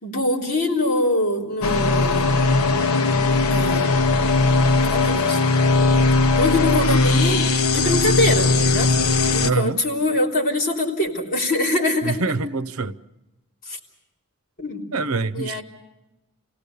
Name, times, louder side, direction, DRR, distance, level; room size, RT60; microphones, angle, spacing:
voice 1, 0.0-2.4 2.7-2.8 3.5-4.0 4.8-5.4 6.3-7.4 7.7-9.0 9.3-12.2 13.7-13.8 14.6-14.8 15.3-15.6, left 1 dB, 45° left, 3.5 m, -23 dB
sound 1, 1.6-9.5, left 3 dB, 85° left, 0.9 m, -19 dB
voice 2, 9.4-9.8 12.0-13.0 14.9-15.6, right 3 dB, 90° right, 0.8 m, -25 dB
28.0 x 17.5 x 6.8 m
head